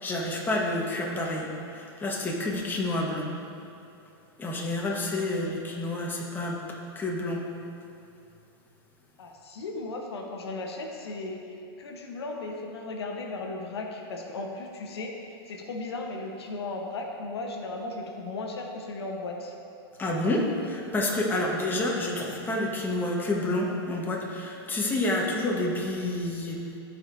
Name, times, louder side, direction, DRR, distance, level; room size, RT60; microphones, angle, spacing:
voice 1, 0.0-3.3 4.4-6.6 6.9-7.4 20.0-26.6, left 1 dB, 15° left, -2 dB, 1.2 m, -29 dB
voice 2, 9.2-11.4 11.8-19.5, left 2 dB, 90° left, 2 dB, 0.9 m, -36 dB
14.0 x 4.7 x 2.6 m, 2.7 s
hypercardioid pair, 120°, 13 cm